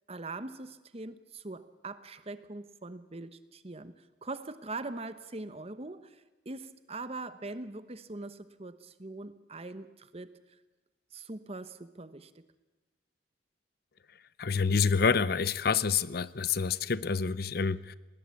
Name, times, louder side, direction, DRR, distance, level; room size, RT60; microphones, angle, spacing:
voice 1, 0.1-10.3 11.1-12.5, right 2 dB, 35° right, 13 dB, 1.1 m, -42 dB
voice 2, 14.4-18.0, left 5 dB, 55° left, 18 dB, 0.6 m, -27 dB
19.5 x 19.0 x 8.4 m, 1.1 s
head